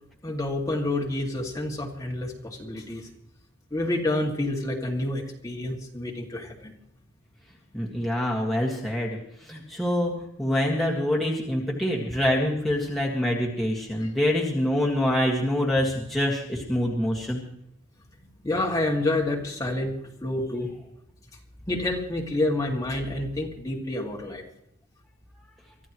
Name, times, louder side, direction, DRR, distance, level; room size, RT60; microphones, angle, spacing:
voice 1, 0.2-3.1 3.7-6.7 14.0-14.1 18.4-19.9 20.2-20.7 21.7-24.4, left 2 dB, 15° left, -1 dB, 2.2 m, -28 dB
voice 2, 7.7-9.1 9.5-10.1 10.4-17.4, left 1 dB, ahead, -4 dB, 1.8 m, -25 dB
24.0 x 14.5 x 3.1 m, 0.76 s
head